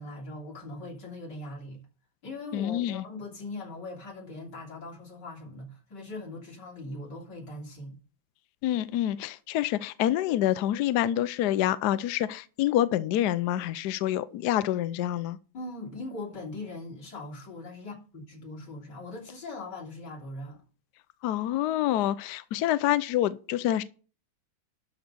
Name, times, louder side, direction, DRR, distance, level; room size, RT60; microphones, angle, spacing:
voice 1, 0.0-1.8 2.2-8.0 15.5-20.6, left 2 dB, 50° left, 3.9 m, -40 dB
voice 2, 2.5-3.0 8.6-15.4 21.2-23.8, left 12 dB, 80° left, 0.9 m, -27 dB
12.0 x 4.1 x 6.6 m
omnidirectional pair, 2.3 m